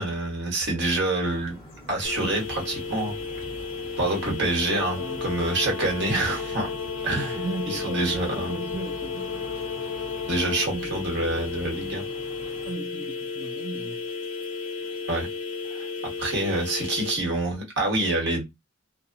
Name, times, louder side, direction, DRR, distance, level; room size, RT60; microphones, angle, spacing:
voice 1, 0.0-1.6 1.9-3.1 4.0-6.7 7.0-7.4 7.7-8.6 10.3-12.0 15.1-15.3 15.7-15.9 16.2-18.4, right 2 dB, 55° right, 1.2 m, -27 dB
sound 1, 1.2-12.7, equal, 20° left, 1.3 m, -45 dB
sound 2, 2.0-17.2, left 4 dB, 35° left, 0.8 m, -34 dB
Brass instrument, 4.4-10.8, left 7 dB, 85° left, 0.4 m, -37 dB
voice 2, 4.9-5.3 7.3-9.5 10.7-11.1 12.6-14.0, right 3 dB, 35° right, 0.4 m, -36 dB
2.6 x 2.2 x 2.5 m
head